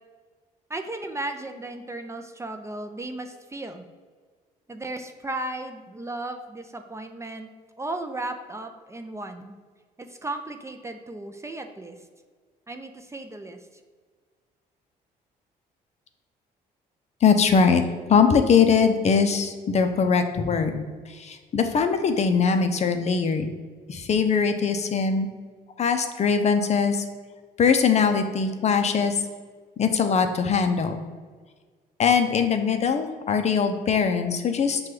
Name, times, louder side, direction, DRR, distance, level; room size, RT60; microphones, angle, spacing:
voice 1, 0.7-3.9 4.7-7.5 7.8-9.6 10.0-12.0 12.7-13.6, right 2 dB, 15° right, 6 dB, 0.4 m, -35 dB
voice 2, 17.2-17.8 18.1-23.5 23.9-25.3 25.8-27.0 27.6-29.2 29.8-31.0 32.0-34.8, left 6 dB, 40° left, 7 dB, 0.5 m, -21 dB
5.8 x 2.3 x 3.2 m, 1.5 s
supercardioid pair, 75°, 17 cm